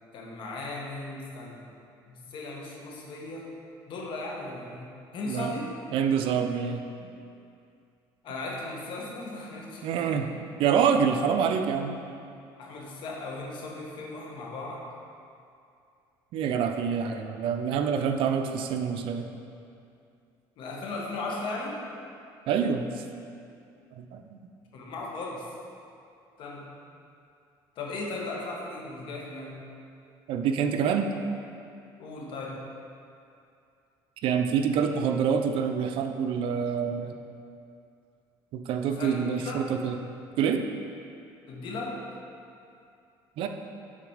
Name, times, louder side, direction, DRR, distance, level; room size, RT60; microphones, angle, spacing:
voice 1, 0.1-1.7 2.1-3.5 3.9-5.7 8.2-10.2 12.6-14.8 20.6-21.8 24.7-25.5 26.4-26.6 27.7-29.6 32.0-32.6 38.9-39.2 39.4-39.7 41.5-42.0, left 2 dB, 60° left, -2 dB, 1.3 m, -37 dB
voice 2, 5.9-6.8 9.8-10.3 10.6-12.0 16.3-19.3 22.5-22.9 24.0-24.4 30.3-31.1 34.2-37.1 38.5-40.0 40.4-40.6 43.4-43.5, right 7 dB, 70° right, 6 dB, 0.5 m, -26 dB
7.4 x 3.9 x 4.8 m, 2.5 s
cardioid pair, 120°, 9 cm